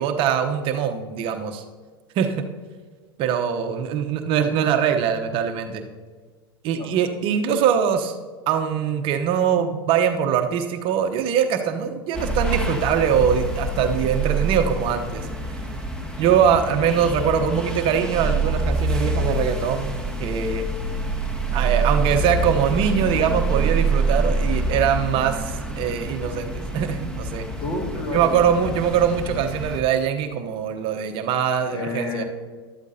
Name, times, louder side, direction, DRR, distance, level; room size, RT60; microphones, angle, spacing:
voice 1, 0.0-1.6 2.2-2.4 3.2-5.8 6.6-8.1 8.5-15.3 16.2-20.7 21.5-27.5 28.1-32.2, right 8 dB, 45° right, 6 dB, 0.9 m, -22 dB
sound 1, 12.1-29.8, right 2 dB, 5° left, 1.5 m, -26 dB
voice 2, 27.6-28.7 31.7-32.2, left 2 dB, 35° left, 2 dB, 2.0 m, -30 dB
13.0 x 12.5 x 2.8 m, 1.5 s
hypercardioid pair, 95°, 13 cm